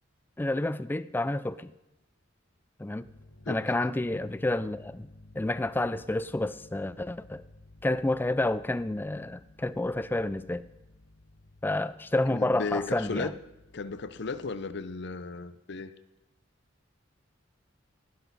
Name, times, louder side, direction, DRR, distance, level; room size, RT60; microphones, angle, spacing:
voice 1, 0.4-1.7 2.8-3.1 3.5-5.1 5.4-7.4 7.8-10.6 11.6-13.3, left 2 dB, 10° left, 15 dB, 0.4 m, -29 dB
sound 1, 3.0-15.2, left 2 dB, 85° left, 1.3 m, -55 dB
voice 2, 12.3-13.3 13.7-15.9, left 4 dB, 65° left, 13 dB, 0.7 m, -35 dB
17.0 x 10.0 x 4.1 m, 1.0 s
head